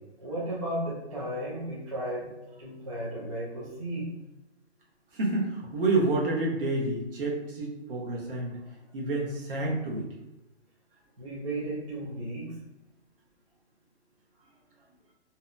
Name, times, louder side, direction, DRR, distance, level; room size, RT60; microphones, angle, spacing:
voice 1, 0.2-4.1 11.2-12.5, right 1 dB, 30° right, -7 dB, 0.4 m, -34 dB
voice 2, 5.1-8.6 8.9-10.1, right 2 dB, 50° right, -2 dB, 0.8 m, -29 dB
2.7 x 2.1 x 2.4 m, 0.93 s
hypercardioid pair, 155°, 34 cm